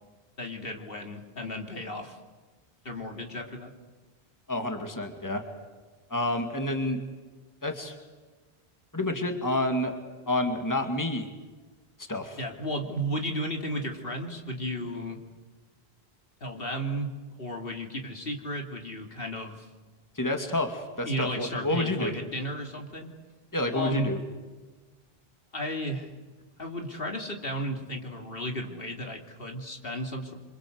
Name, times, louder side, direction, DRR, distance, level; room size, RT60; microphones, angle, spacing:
voice 1, 0.4-2.2 2.8-3.7 12.4-15.2 16.4-17.1 17.4-19.7 21.0-23.1 23.7-24.2 25.5-26.1 26.6-30.3, equal, 65° left, 3 dB, 3.2 m, -34 dB
voice 2, 4.5-5.4 6.1-7.0 7.6-8.0 8.9-9.9 10.3-11.3 12.1-12.4 20.2-22.1 23.5-24.2, left 1 dB, 20° left, 5 dB, 2.4 m, -29 dB
28.0 x 26.0 x 8.1 m, 1.3 s
omnidirectional pair, 1.0 m